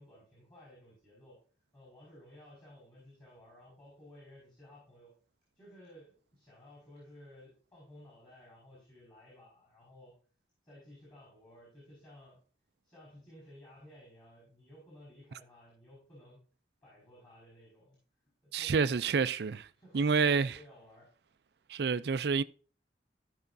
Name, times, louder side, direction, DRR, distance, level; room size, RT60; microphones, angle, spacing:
voice 1, 0.0-1.4 1.7-5.1 5.6-10.2 10.6-12.4 12.8-16.4 16.8-18.0 18.4-18.9 19.8-21.1, left 1 dB, 25° left, 4.8 m, -56 dB
voice 2, 18.5-19.7 19.9-20.6 21.7-22.4, right 5 dB, 65° right, 0.4 m, -28 dB
14.5 x 5.7 x 2.6 m
head